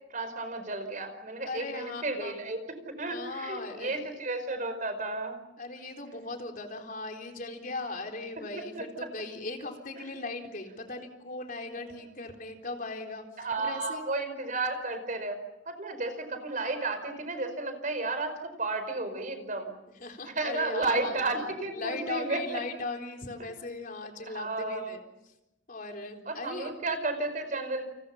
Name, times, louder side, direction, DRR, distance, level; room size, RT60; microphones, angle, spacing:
voice 1, 0.1-2.6 3.0-5.4 13.4-15.4 15.6-19.7 20.2-22.4 24.3-24.8 26.2-27.8, right 2 dB, 40° right, 8 dB, 4.9 m, -32 dB
voice 2, 1.5-2.4 3.1-4.0 5.6-13.2 13.6-14.0 20.0-25.0 25.7-26.7, left 3 dB, 45° left, 3 dB, 3.9 m, -38 dB
30.0 x 29.0 x 5.7 m, 0.94 s
head